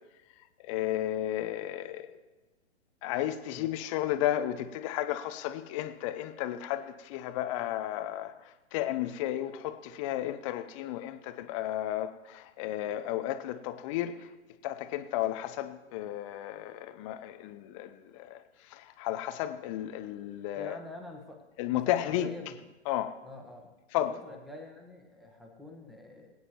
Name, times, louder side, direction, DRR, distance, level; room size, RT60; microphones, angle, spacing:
voice 1, 0.6-2.2 3.0-14.3 14.6-20.8 21.6-22.3 22.9-23.2 23.9-24.1, left 13 dB, 30° left, 0.6 m, -33 dB
voice 2, 20.6-22.6 23.2-23.7 24.1-26.3, left 2 dB, ahead, 1.4 m, -46 dB
22.0 x 9.3 x 3.0 m
figure-of-eight pair, 115°, 35 cm